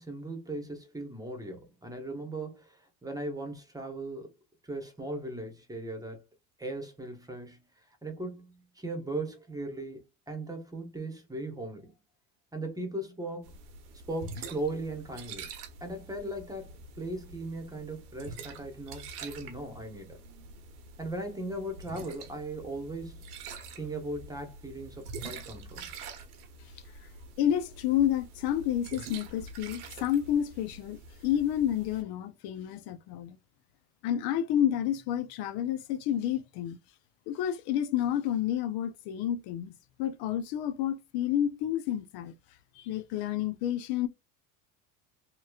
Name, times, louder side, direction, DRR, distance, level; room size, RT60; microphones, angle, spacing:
voice 1, 0.0-4.3 4.6-6.2 6.6-7.6 8.0-10.0 10.3-11.9 12.5-13.5 14.1-15.5 15.8-20.2 21.0-23.2 23.7-25.8, right 2 dB, 10° right, 1.1 m, -38 dB
Wine Bottle, 13.4-32.0, right 4 dB, 85° right, 1.0 m, -46 dB
voice 2, 27.4-33.4 34.0-36.8 37.3-39.7 40.0-42.3 42.7-44.1, left 10 dB, 60° left, 0.6 m, -30 dB
3.0 x 2.9 x 2.3 m
supercardioid pair, 90°, 44 cm